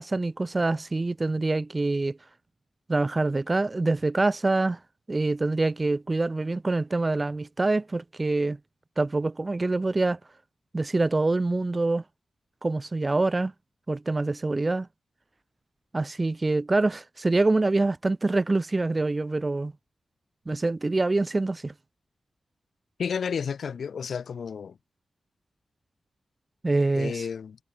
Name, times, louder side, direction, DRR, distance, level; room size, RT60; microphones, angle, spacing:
voice 1, 0.0-2.2 2.9-4.8 5.1-8.6 9.0-10.2 10.7-12.0 12.6-13.5 13.9-14.9 15.9-19.7 20.5-21.7 26.6-27.2, right 2 dB, 30° right, 1.2 m, -25 dB
voice 2, 23.0-24.8 26.9-27.6, left 6 dB, 80° left, 3.1 m, -31 dB
cardioid pair, 80°, 0 cm